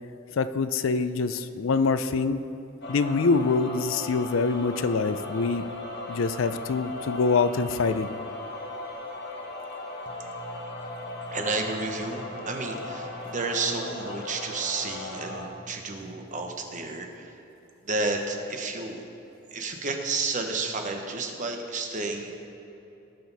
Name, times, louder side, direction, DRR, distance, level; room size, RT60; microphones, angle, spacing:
voice 1, 0.4-2.4 2.9-5.6 6.1-8.1, left 4 dB, 75° left, 12 dB, 0.5 m, -25 dB
sound 1, 2.8-15.4, left 2 dB, 60° left, 1.5 m, -38 dB
voice 2, 10.1-17.3 17.9-19.0 19.5-22.3, right 3 dB, 40° right, 3 dB, 1.1 m, -32 dB
18.5 x 6.7 x 4.1 m, 2.9 s
head